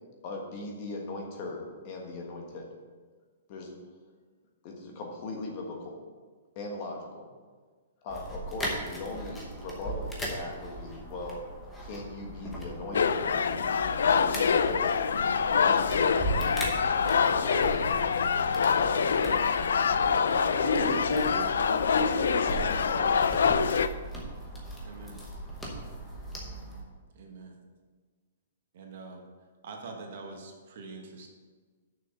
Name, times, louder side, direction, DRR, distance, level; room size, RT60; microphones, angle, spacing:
voice 1, 0.2-2.7 3.5-3.7 4.6-6.0 6.5-7.3 8.0-11.4 11.8-13.4 14.1-15.0 15.6-16.7 17.2-18.0 18.7-18.9 19.8-20.7 22.7-23.1, left 2 dB, 25° left, 1 dB, 1.3 m, -39 dB
sound 1, 8.1-26.8, right 1 dB, 5° left, 1.0 m, -38 dB
sound 2, 12.9-23.9, left 6 dB, 85° left, 0.4 m, -25 dB
voice 2, 20.6-23.0, left 3 dB, 70° left, 2 dB, 1.7 m, -31 dB
voice 3, 24.8-25.2 27.1-27.6 28.7-29.2 29.6-31.3, right 3 dB, 45° right, 2 dB, 1.4 m, -44 dB
6.8 x 6.1 x 6.8 m, 1.5 s
hypercardioid pair, 180°, 0 cm